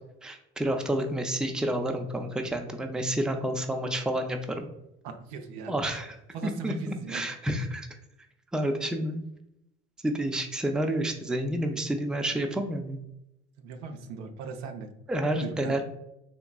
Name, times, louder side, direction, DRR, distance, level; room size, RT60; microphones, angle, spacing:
voice 1, 0.2-4.7 5.7-6.2 6.4-7.9 8.5-9.2 10.0-13.0 15.1-15.8, right 1 dB, ahead, 5 dB, 0.4 m, -29 dB
voice 2, 5.0-5.7 6.3-7.2 13.6-14.9 15.4-15.7, right 5 dB, 80° right, 6 dB, 0.5 m, -38 dB
3.6 x 2.9 x 2.3 m, 0.84 s
hypercardioid pair, 65°, 31 cm